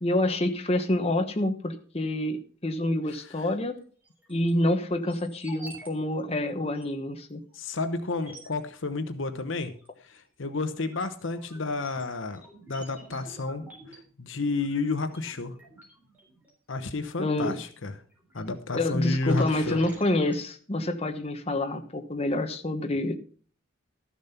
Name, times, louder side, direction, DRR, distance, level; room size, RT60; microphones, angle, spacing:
voice 1, 0.0-3.8 4.3-7.4 17.2-17.6 18.7-23.1, left 1 dB, 30° left, 5 dB, 1.2 m, -27 dB
sound 1, 4.0-4.5 5.1-5.9 6.2-6.3 6.7-6.8 7.6-7.7 8.1-8.6 9.8-10.2 10.6-16.5 18.1-18.5 18.9-20.4, right 1 dB, 10° right, 3.7 m, -48 dB
voice 2, 7.5-9.7 10.1-12.4 12.7-15.5 16.7-17.9 18.3-19.8, left 3 dB, 60° left, 9 dB, 0.9 m, -31 dB
13.0 x 7.3 x 5.7 m, 0.43 s
head